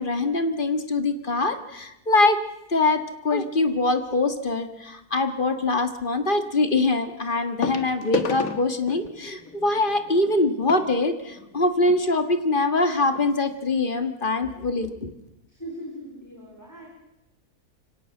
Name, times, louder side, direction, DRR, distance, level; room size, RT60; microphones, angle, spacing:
voice 1, 0.0-2.4 2.7-15.1, left 2 dB, 35° left, 9 dB, 1.7 m, -23 dB
sound 1, 4.0-4.3 6.0-6.1 7.6-12.0 12.8-12.9 13.1-13.3 13.8-13.9, left 4 dB, 65° left, 1.7 m, -32 dB
voice 2, 15.5-16.9, equal, 10° left, -1 dB, 3.9 m, -39 dB
24.5 x 17.0 x 7.7 m, 0.91 s
omnidirectional pair, 1.6 m